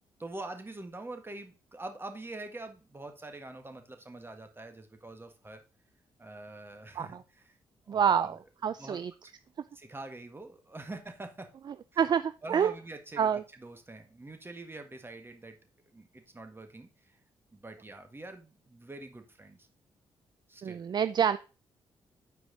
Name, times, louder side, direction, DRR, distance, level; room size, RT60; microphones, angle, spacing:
voice 1, 0.2-5.6 6.2-7.6 7.8-8.4 8.8-9.3 9.7-11.5 11.9-12.0 12.4-15.6 15.9-17.2 17.5-19.7 20.5-20.8, right 2 dB, 20° right, 6 dB, 1.7 m, -45 dB
voice 2, 7.9-8.4 8.6-9.1 12.0-12.7 13.2-13.4 20.6-21.4, right 8 dB, 45° right, 14 dB, 0.4 m, -27 dB
8.3 x 4.7 x 3.9 m, 0.32 s
cardioid pair, 65°, 10 cm